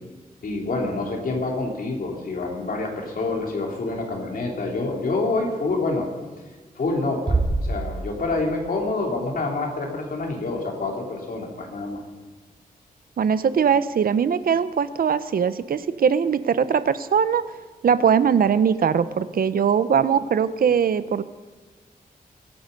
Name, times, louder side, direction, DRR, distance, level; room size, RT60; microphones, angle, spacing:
voice 1, 0.4-6.1 6.8-12.0, left 3 dB, 65° left, 0 dB, 3.3 m, -27 dB
Bass drum, 7.3-8.7, right 2 dB, 30° right, 2.7 m, -25 dB
voice 2, 13.2-17.4 17.8-21.2, right 7 dB, 70° right, 14 dB, 0.7 m, -21 dB
23.0 x 9.5 x 5.3 m, 1.3 s
wide cardioid pair, 115°, 16 cm